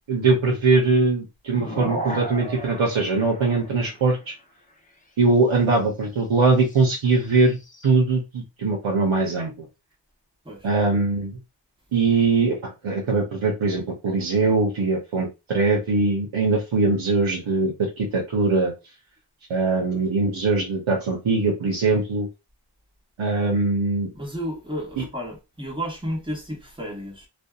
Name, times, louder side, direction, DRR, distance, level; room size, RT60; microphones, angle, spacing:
voice 1, 0.1-4.3 5.2-9.5 10.6-11.4 11.9-18.7 19.5-22.3 23.2-24.1 25.0-25.1, right 3 dB, 85° right, 0.7 m, -21 dB
sound 1, 1.5-4.2 6.6-7.9, right 1 dB, 15° left, 0.6 m, -35 dB
voice 2, 24.1-27.3, equal, 10° right, 0.9 m, -32 dB
2.6 x 2.2 x 2.2 m
wide cardioid pair, 60°, 46 cm